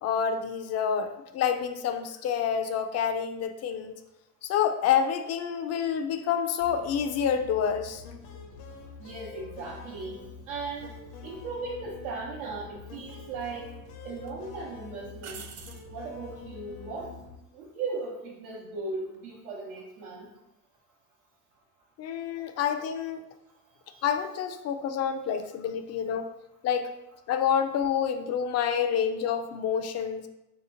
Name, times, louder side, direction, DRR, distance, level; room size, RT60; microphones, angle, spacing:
voice 1, 0.0-4.0 4.4-8.0 22.0-23.2 24.0-26.3 26.6-26.9 27.3-30.2, left 8 dB, 40° left, 8 dB, 0.4 m, -28 dB
sound 1, 6.6-17.4, left 5 dB, 65° left, 0.8 m, -46 dB
voice 2, 9.0-10.9 11.2-13.7 14.0-15.4 15.9-17.1 17.5-20.3 23.9-24.0, right 3 dB, 85° right, -4 dB, 0.8 m, -37 dB
sound 2, 11.8-12.0 13.1-13.8 14.2-14.3 15.2-15.9 19.0-19.4, right 7 dB, 35° right, 0.4 m, -45 dB
3.4 x 2.9 x 3.7 m, 0.91 s
supercardioid pair, 90°, 44 cm